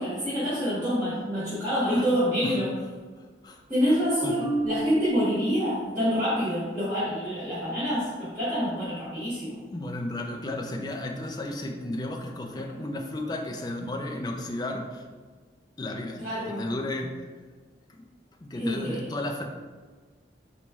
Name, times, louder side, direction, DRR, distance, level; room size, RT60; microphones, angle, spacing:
voice 1, 0.0-2.7 3.7-9.6 12.5-12.8 16.2-16.7 18.5-19.0, equal, 15° right, -16 dB, 1.4 m, -27 dB
voice 2, 3.9-4.4 9.7-15.0 15.8-17.3 18.4-19.4, left 1 dB, 25° left, 3 dB, 0.3 m, -33 dB
Marimba xylophone, 4.4-6.4, right 2 dB, 80° left, 0.7 m, -33 dB
4.1 x 3.1 x 3.4 m, 1.4 s
head